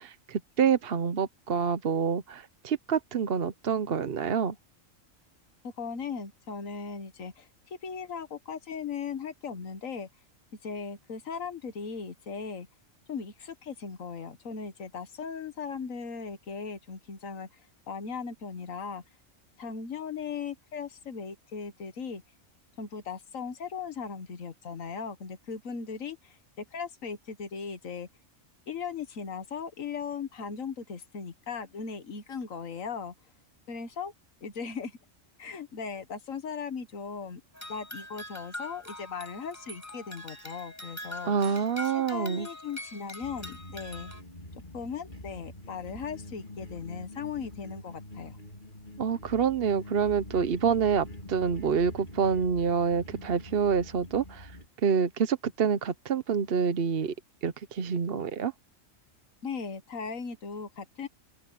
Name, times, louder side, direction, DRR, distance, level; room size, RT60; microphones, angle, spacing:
voice 1, 0.0-4.6 41.2-42.5 49.0-54.5 54.8-57.1 57.4-58.5, right 6 dB, 50° right, 0.9 m, -27 dB
voice 2, 5.6-10.1 10.6-12.7 13.1-19.0 19.6-22.2 22.8-26.4 26.7-28.1 28.7-33.1 33.7-34.1 34.4-35.0 35.4-37.4 37.7-44.1 44.5-48.4 59.4-61.1, left 6 dB, 85° left, 1.8 m, -38 dB
sound 1, 37.5-44.2, left 1 dB, 10° left, 6.9 m, -43 dB
sound 2, 43.2-54.7, left 1 dB, 40° left, 2.6 m, -45 dB
open air
omnidirectional pair, 1.3 m